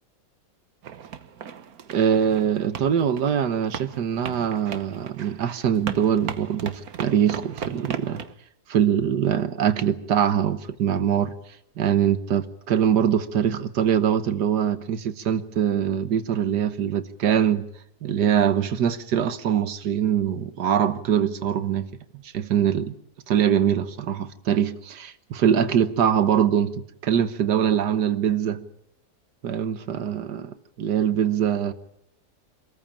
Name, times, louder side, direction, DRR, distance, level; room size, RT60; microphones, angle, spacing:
sound 1, 0.8-8.3, right 8 dB, 65° right, 1.5 m, -37 dB
voice 1, 1.9-8.2 8.7-11.3 11.8-17.6 18.0-21.9 22.2-23.0 23.3-28.6 29.4-31.7, right 9 dB, 85° right, 1.7 m, -23 dB
26.0 x 14.5 x 8.8 m
omnidirectional pair, 1.7 m